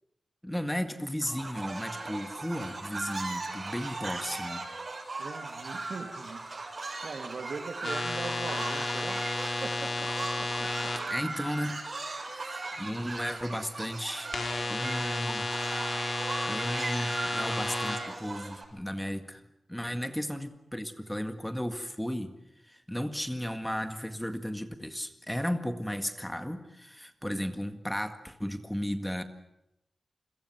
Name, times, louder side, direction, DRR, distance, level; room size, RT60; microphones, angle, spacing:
voice 1, 0.4-4.7 11.1-11.8 12.3-14.4 14.7-15.5 16.5-19.4 19.7-22.3 22.6-29.2, equal, 5° left, 8 dB, 1.9 m, -35 dB
sound 1, 1.2-18.6, right 3 dB, 45° right, 6.8 m, -38 dB
voice 2, 5.2-6.5 6.8-9.3 9.6-11.0 12.4-12.6 20.0-20.2, right 4 dB, 65° right, 7 dB, 2.5 m, -41 dB
sound 2, 7.8-11.0 14.3-18.0, left 2 dB, 60° left, 5.1 m, -32 dB
29.0 x 23.5 x 6.2 m, 0.83 s
wide cardioid pair, 130°, 0 cm